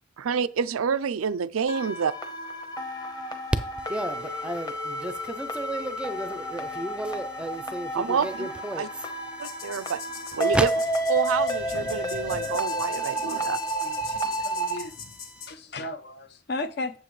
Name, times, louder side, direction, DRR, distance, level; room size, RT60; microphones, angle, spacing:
voice 1, 0.2-2.1 7.9-8.9 9.4-10.0 10.3-10.7 11.1-13.6, right 6 dB, 85° right, 0.5 m, -28 dB
sound 1, 1.7-14.8, right 1 dB, 20° left, 1.0 m, -31 dB
voice 2, 3.9-8.8 10.5-10.6, right 1 dB, 5° right, 0.5 m, -32 dB
sound 2, 9.4-15.5, left 6 dB, 80° left, 1.3 m, -42 dB
voice 3, 13.8-14.9 15.5-16.9, left 2 dB, 50° left, 0.7 m, -35 dB
8.1 x 7.8 x 3.2 m
head